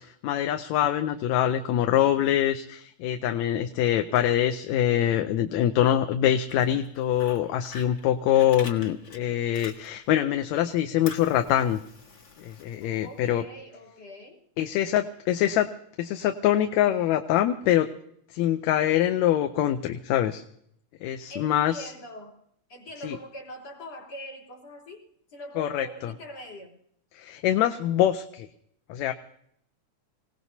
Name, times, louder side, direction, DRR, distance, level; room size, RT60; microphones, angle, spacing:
voice 1, 0.0-11.8 12.4-13.4 14.6-15.7 16.0-17.9 18.3-20.4 21.0-21.9 23.0-23.2 25.6-26.1 27.1-28.5 28.9-29.1, left 11 dB, 80° left, 7 dB, 2.0 m, -24 dB
Fire, 6.3-10.2 10.5-13.3, left 4 dB, 40° left, 1.8 m, -46 dB
voice 2, 12.8-14.5 21.3-22.4 22.7-26.8, equal, 55° left, 3 dB, 4.4 m, -43 dB
26.5 x 17.5 x 2.8 m, 0.69 s
omnidirectional pair, 3.3 m